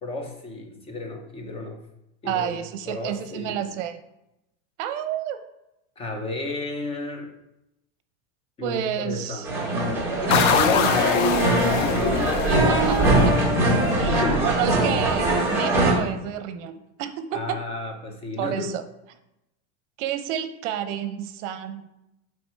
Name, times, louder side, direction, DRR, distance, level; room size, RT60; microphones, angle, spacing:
voice 1, 0.0-1.8 2.2-3.6 6.0-7.3 8.6-9.4 10.2-13.3 14.0-14.6 17.3-18.7, left 2 dB, 15° left, 3 dB, 0.7 m, -31 dB
voice 2, 2.2-4.0 4.8-5.4 8.6-9.5 12.5-13.0 13.2-13.3 14.0-17.6 18.4-18.8 20.0-21.9, right 10 dB, 60° right, 10 dB, 0.8 m, -30 dB
sound 1, 9.4-15.9, right 2 dB, 5° right, 1.4 m, -22 dB
sound 2, 10.3-14.8, left 9 dB, 65° left, 0.7 m, -26 dB
7.8 x 3.3 x 4.6 m, 0.88 s
supercardioid pair, 160°, 40 cm